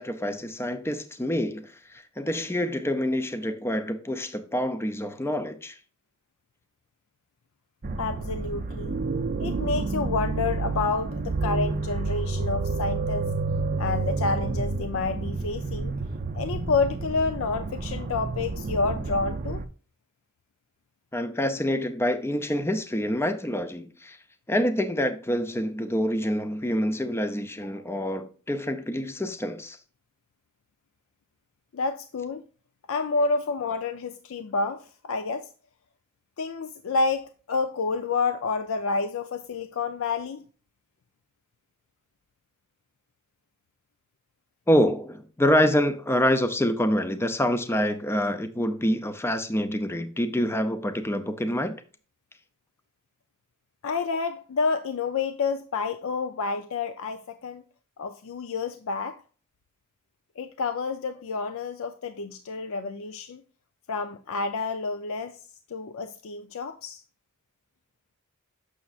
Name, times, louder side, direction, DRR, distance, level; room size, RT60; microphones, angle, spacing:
voice 1, 0.0-5.8 21.1-24.2 24.5-29.8 44.7-51.7, equal, 10° left, 0.5 m, -26 dB
sound 1, 7.8-19.6, right 3 dB, 40° right, 0.5 m, -30 dB
voice 2, 8.0-9.0 9.4-13.3 13.8-15.9 16.3-19.6 31.7-32.4 32.9-35.5 36.4-40.4 53.8-57.6 58.0-59.2 60.4-63.4 63.9-65.4 65.7-67.0, left 4 dB, 65° left, 0.4 m, -29 dB
7.0 x 6.3 x 2.4 m
head